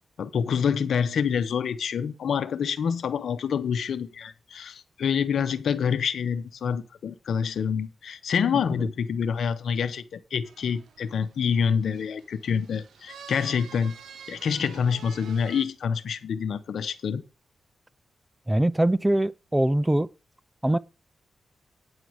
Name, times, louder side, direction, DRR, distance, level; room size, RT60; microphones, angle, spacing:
voice 1, 0.2-13.9 14.3-17.2, left 7 dB, 80° left, 0.9 m, -27 dB
sound 1, 10.4-15.6, right 7 dB, 85° right, 0.9 m, -48 dB
voice 2, 18.5-20.1 20.6-20.8, right 1 dB, 10° right, 0.4 m, -22 dB
9.8 x 4.6 x 7.9 m
cardioid pair, 75°, 0 cm